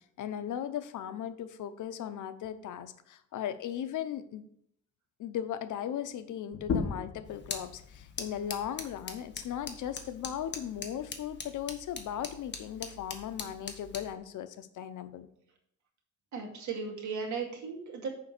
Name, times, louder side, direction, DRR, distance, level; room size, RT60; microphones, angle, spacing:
voice 1, 0.0-4.4 5.2-15.3, left 10 dB, 90° left, 11 dB, 0.8 m, -37 dB
sound 1, 6.5-11.7, left 5 dB, 55° left, 1.3 m, -39 dB
sound 2, 7.2-14.1, left 5 dB, 40° left, 1.1 m, -43 dB
voice 2, 16.3-18.1, right 5 dB, 70° right, 0 dB, 2.2 m, -36 dB
6.7 x 5.2 x 6.6 m, 0.70 s
wide cardioid pair, 150°, 29 cm